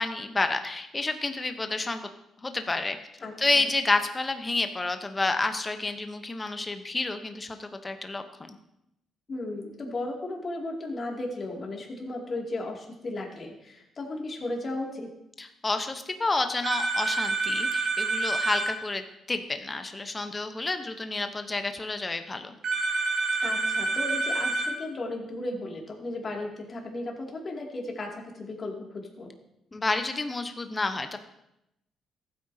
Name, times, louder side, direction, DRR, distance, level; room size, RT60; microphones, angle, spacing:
voice 1, 0.0-2.1 2.4-3.0 3.4-8.6 15.4-22.5 29.7-31.2, left 3 dB, 25° left, 8 dB, 0.8 m, -30 dB
voice 2, 3.2-3.7 9.3-15.1 23.4-29.3, left 2 dB, 40° left, 0 dB, 2.3 m, -35 dB
sound 1, 16.6-18.7 22.6-24.7, right 3 dB, 70° right, 2.6 m, -27 dB
15.0 x 8.7 x 2.7 m, 0.83 s
cardioid pair, 90°, 0 cm